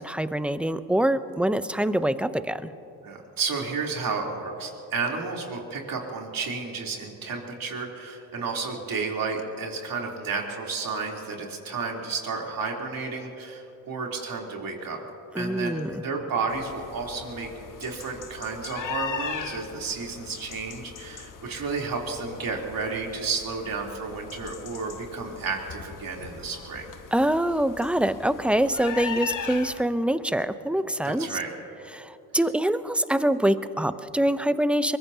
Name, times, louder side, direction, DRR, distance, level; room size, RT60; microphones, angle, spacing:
voice 1, 0.0-2.7 15.3-16.0 27.1-31.4 31.9-35.0, right 1 dB, 5° right, 13 dB, 0.6 m, -25 dB
voice 2, 3.0-15.0 15.4-17.5 17.8-26.9 31.0-31.5, right 4 dB, 50° right, 0 dB, 3.5 m, -32 dB
sound 1, 16.5-29.8, left 6 dB, 45° left, 1.4 m, -39 dB
23.0 x 22.0 x 2.8 m, 3.0 s
supercardioid pair, 65°, 43 cm